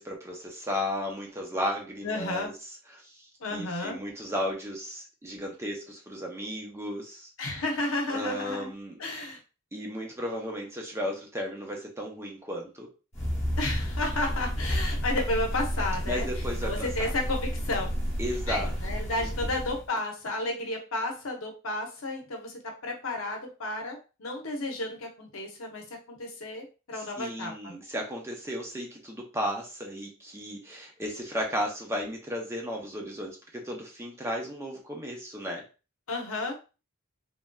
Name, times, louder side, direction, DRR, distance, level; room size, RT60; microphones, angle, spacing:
voice 1, 0.0-2.5 2.9-7.3 8.1-9.0 9.7-12.9 16.1-16.9 18.2-18.7 27.2-35.6, equal, 10° right, 1 dB, 0.5 m, -34 dB
voice 2, 2.0-2.5 3.4-4.0 7.4-8.7 9.0-9.4 13.6-17.9 18.5-27.8 36.1-36.5, left 2 dB, 70° left, 1 dB, 0.8 m, -32 dB
sound 1, 13.1-19.9, equal, 30° left, 1.0 m, -31 dB
3.2 x 2.6 x 2.2 m, 0.32 s
head